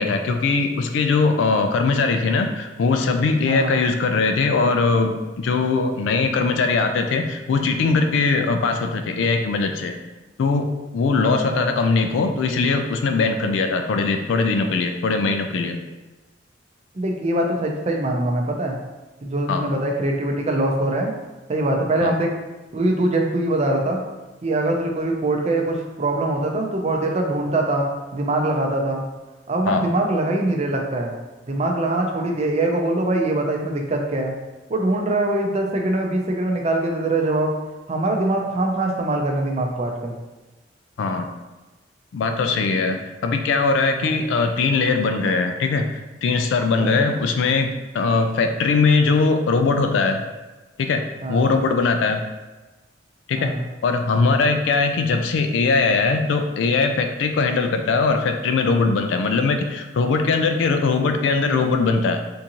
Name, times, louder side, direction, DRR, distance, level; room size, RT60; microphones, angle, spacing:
voice 1, 0.0-10.0 10.4-10.7 10.9-15.8 19.5-19.7 22.0-22.2 29.7-29.9 41.0-41.3 42.1-50.2 50.8-51.0 51.3-52.2 53.3-53.5 53.8-62.2, left 4 dB, 80° left, 5 dB, 0.3 m, -21 dB
voice 2, 3.4-3.8 11.2-11.7 17.0-18.8 19.2-21.1 21.5-22.3 22.7-24.0 24.4-29.0 29.5-31.1 31.5-34.3 34.7-37.5 37.9-40.1 44.0-44.2 46.8-47.1 51.2-51.5 53.4-53.6, right 2 dB, 35° right, 1 dB, 0.4 m, -23 dB
3.6 x 2.6 x 2.9 m, 1.1 s
head